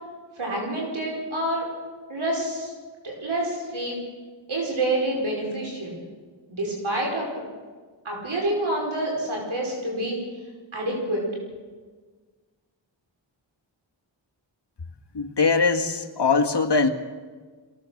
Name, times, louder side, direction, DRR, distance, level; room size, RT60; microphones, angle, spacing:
voice 1, 0.4-1.7 2.1-2.7 3.0-4.0 4.5-6.0 6.5-7.3 8.0-10.2 10.7-11.3, right 1 dB, 85° right, -2 dB, 5.4 m, -27 dB
voice 2, 15.1-16.9, left 4 dB, 60° left, 4 dB, 1.8 m, -21 dB
23.0 x 17.0 x 6.6 m, 1.5 s
cardioid pair, 50°, 47 cm